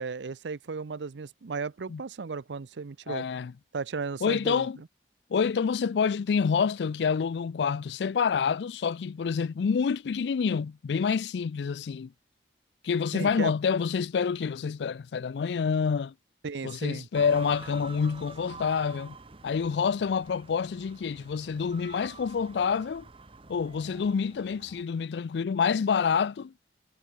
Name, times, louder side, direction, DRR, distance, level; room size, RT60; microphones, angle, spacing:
voice 1, 0.0-3.2 3.7-4.7 13.1-13.5 16.4-17.1, right 4 dB, 90° right, 0.6 m, -35 dB
voice 2, 3.1-3.5 4.2-4.8 5.3-12.1 12.8-16.1 16.6-19.2 19.4-23.0 23.5-26.5, left 6 dB, 70° left, 0.4 m, -27 dB
sound 1, 17.1-24.8, right 4 dB, 30° right, 1.0 m, -47 dB
head